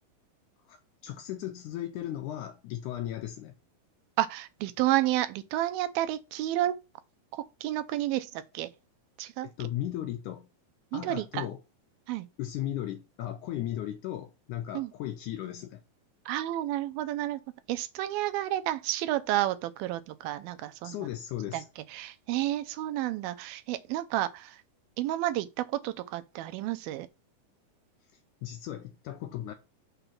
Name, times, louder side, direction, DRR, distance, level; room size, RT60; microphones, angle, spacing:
voice 1, 0.7-3.5 9.4-10.5 10.9-11.6 12.4-15.8 20.8-21.7 28.4-29.5, left 12 dB, 80° left, 1.8 m, -36 dB
voice 2, 4.2-6.7 7.3-8.3 8.5-8.7 9.2-9.5 10.9-11.4 12.1-12.3 14.7-14.9 16.3-17.4 17.7-21.0 21.5-21.6 21.9-24.6 25.0-27.1, right 14 dB, 85° right, 2.5 m, -30 dB
5.9 x 5.4 x 5.8 m
omnidirectional pair, 4.2 m